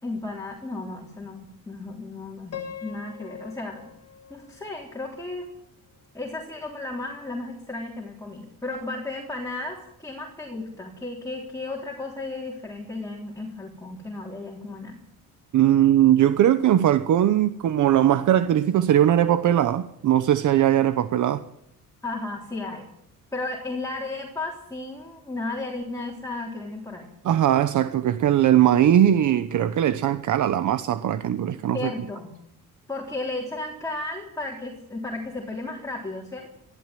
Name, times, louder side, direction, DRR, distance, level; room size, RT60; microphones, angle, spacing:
voice 1, 0.0-3.9 4.3-5.5 6.1-15.0 22.0-22.9 23.3-27.1 31.7-32.3 32.9-36.5, left 2 dB, 10° left, 3.6 m, -34 dB
Piano, 2.5-5.5, left 9 dB, 50° left, 2.4 m, -42 dB
voice 2, 15.5-21.4 27.2-31.9, right 11 dB, 60° right, 1.0 m, -20 dB
23.0 x 14.5 x 9.2 m
cardioid pair, 155°, 34 cm